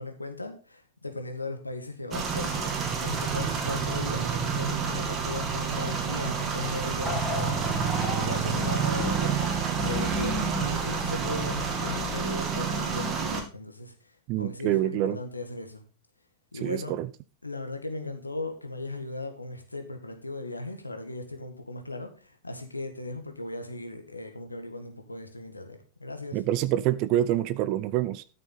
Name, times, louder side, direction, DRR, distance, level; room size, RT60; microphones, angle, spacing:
voice 1, 0.0-9.4 9.8-13.9 14.4-15.8 16.5-16.9 17.4-26.4, left 2 dB, 80° left, 1.9 m, -37 dB
sound 1, 2.1-13.4, right 5 dB, 25° right, 2.3 m, -29 dB
sound 2, 7.0-12.5, left 3 dB, 10° left, 2.8 m, -39 dB
voice 2, 14.3-15.2 16.6-17.1 26.3-28.2, right 13 dB, 40° right, 0.5 m, -26 dB
13.0 x 6.7 x 4.0 m
figure-of-eight pair, 90°, 0 cm